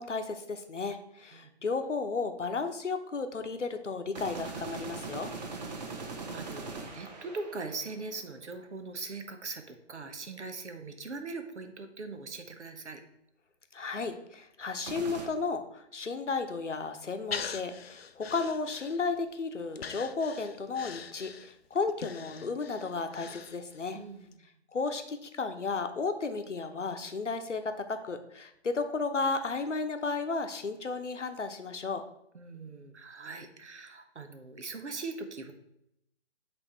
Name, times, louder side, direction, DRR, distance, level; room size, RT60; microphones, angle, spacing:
voice 1, 0.0-5.3 13.7-24.0 24.7-32.0, left 4 dB, 80° left, 7 dB, 0.9 m, -33 dB
sound 1, 4.2-8.2 14.9-15.3, right 3 dB, 35° right, 0.9 m, -40 dB
voice 2, 6.3-13.0 23.9-24.3 32.3-35.5, right 3 dB, 70° right, 7 dB, 1.1 m, -41 dB
Breathing, 17.3-19.3 19.8-23.9 24.3-24.4, left 6 dB, 55° left, 0.5 m, -42 dB
8.1 x 3.5 x 4.5 m, 0.79 s
figure-of-eight pair, 140°, 36 cm